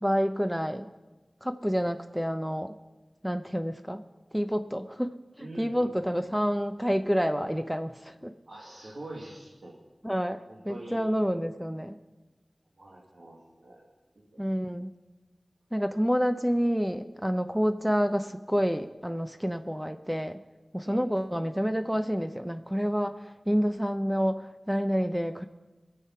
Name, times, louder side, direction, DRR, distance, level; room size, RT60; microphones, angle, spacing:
voice 1, 0.0-0.9 1.4-2.7 3.2-4.0 4.3-8.3 10.0-12.0 14.4-14.9 15.7-20.4 20.7-23.2 23.5-25.5, equal, 5° right, 8 dB, 0.7 m, -28 dB
voice 2, 5.4-6.0 8.5-9.7 10.5-11.0 12.8-13.9 14.2-14.3 20.9-21.0, right 1 dB, 90° right, -3 dB, 2.1 m, -44 dB
22.0 x 7.6 x 5.7 m, 1.1 s
wide cardioid pair, 60°, 0 cm